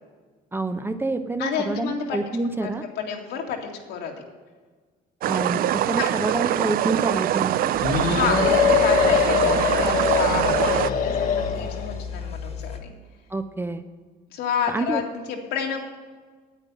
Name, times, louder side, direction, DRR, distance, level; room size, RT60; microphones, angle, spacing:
voice 1, 0.5-2.8 5.3-7.7 13.3-13.8 14.7-15.0, right 2 dB, 15° right, 9 dB, 0.8 m, -27 dB
voice 2, 1.4-2.2 2.6-2.7 3.0-4.2 6.0-6.1 8.1-12.9 14.3-15.8, left 7 dB, 85° left, 1 dB, 2.2 m, -29 dB
sound 1, 5.2-10.9, right 12 dB, 60° right, 0.4 m, -24 dB
sound 2, 7.8-12.0, left 7 dB, 55° left, 1.5 m, -22 dB
sound 3, 7.8-12.8, left 6 dB, 35° left, 1.6 m, -34 dB
9.1 x 9.0 x 8.4 m, 1.4 s
cardioid pair, 110°, 17 cm